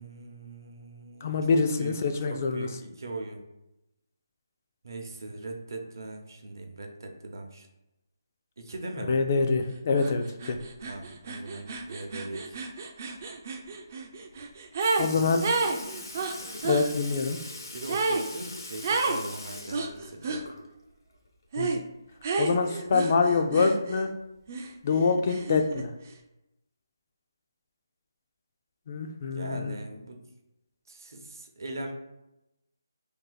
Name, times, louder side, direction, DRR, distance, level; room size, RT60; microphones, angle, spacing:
voice 1, 0.0-3.4 4.8-7.7 8.6-9.2 10.8-12.6 15.1-15.3 17.7-20.4 29.3-30.3 30.9-31.9, right 2 dB, 70° right, 3 dB, 0.7 m, -40 dB
voice 2, 1.2-2.7 9.1-10.6 15.0-15.4 16.6-17.4 21.6-21.7 22.4-24.1 24.8-25.9 28.9-29.8, left 4 dB, 40° left, 6 dB, 0.3 m, -25 dB
sound 1, 10.0-10.1 10.4-15.1 15.4-16.9 17.9-18.3 18.8-19.2 19.7-20.4 21.5-21.8 22.2-24.1 24.5-25.9, right 3 dB, 40° right, 0.3 m, -31 dB
Sink (filling or washing) / Liquid, 14.4-14.5 14.8-20.9 21.3-21.4 22.9-23.0 23.9-24.0 24.8-25.1 25.9-26.0, left 2 dB, 80° left, 0.8 m, -42 dB
2.6 x 2.4 x 3.9 m, 0.91 s
hypercardioid pair, 160°, 2 cm